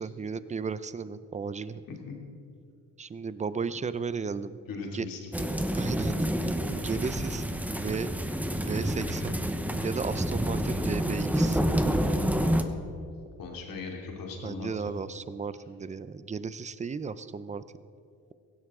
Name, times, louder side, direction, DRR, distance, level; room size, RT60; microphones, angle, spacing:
voice 1, 0.0-1.8 3.0-4.6 4.9-5.1 5.7-7.4 7.7-8.1 8.6-9.4 9.8-11.6 14.4-17.6, right 5 dB, 20° right, 14 dB, 0.5 m, -34 dB
voice 2, 4.7-5.5 12.3-12.6 13.4-15.0, left 4 dB, 80° left, 0 dB, 2.9 m, -39 dB
sound 1, 5.3-12.6, right 1 dB, 5° right, 0.8 m, -28 dB
17.0 x 16.5 x 3.7 m, 2.4 s
cardioid pair, 120°, 34 cm